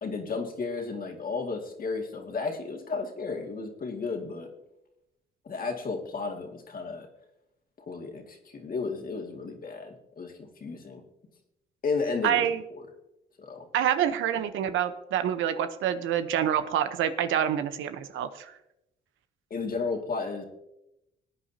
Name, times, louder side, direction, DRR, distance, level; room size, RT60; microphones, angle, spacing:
voice 1, 0.0-4.5 5.4-7.1 7.8-11.0 11.8-12.5 12.7-12.9 13.4-13.7 19.5-20.4, left 4 dB, 45° left, 2 dB, 2.1 m, -33 dB
voice 2, 12.2-12.6 13.7-18.5, right 9 dB, 85° right, 10 dB, 0.9 m, -27 dB
19.5 x 8.9 x 2.8 m, 0.89 s
cardioid pair, 90°, 20 cm